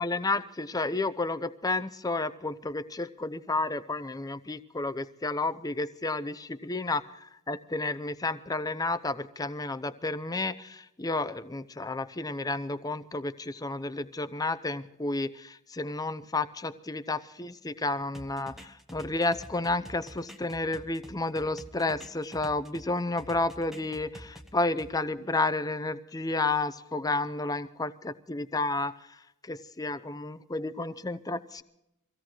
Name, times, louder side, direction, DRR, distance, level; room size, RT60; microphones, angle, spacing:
voice 1, 0.0-29.0 29.4-31.6, left 2 dB, 15° left, 12 dB, 0.6 m, -31 dB
sound 1, 18.1-22.9 23.2-24.9, equal, ahead, 1.0 m, -47 dB
25.0 x 16.5 x 3.1 m, 0.86 s
head